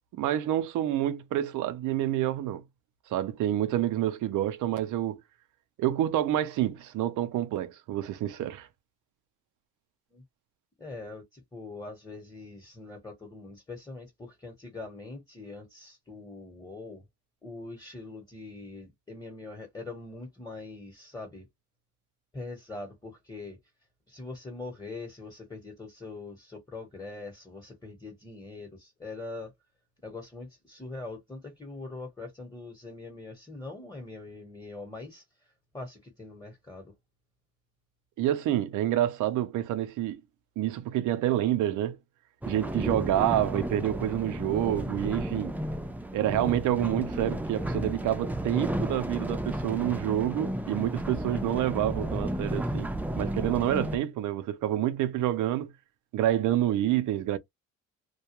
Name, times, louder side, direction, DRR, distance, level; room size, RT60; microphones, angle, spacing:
voice 1, 0.2-2.6 3.1-5.2 5.8-8.7 38.2-40.2 40.6-42.0 42.5-45.6 46.1-52.9 53.2-55.7 56.1-57.4, right 12 dB, 85° right, 0.6 m, -28 dB
voice 2, 10.8-17.1 17.4-21.5 22.3-23.6 24.1-29.5 30.0-36.9, left 3 dB, 15° left, 1.1 m, -43 dB
sound 1, 42.4-54.0, right 1 dB, 5° right, 0.5 m, -33 dB
2.3 x 2.2 x 2.9 m
cardioid pair, 90°, 30 cm